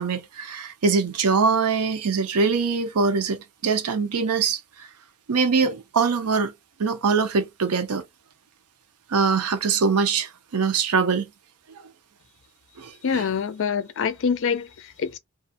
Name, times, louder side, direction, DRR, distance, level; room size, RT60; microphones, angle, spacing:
voice 1, 0.0-4.6 5.3-6.5 6.8-8.0 9.1-11.2 12.8-13.2, right 5 dB, 80° right, 0.6 m, -23 dB
voice 2, 13.0-15.2, left 6 dB, 60° left, 0.4 m, -25 dB
2.5 x 2.3 x 2.7 m
head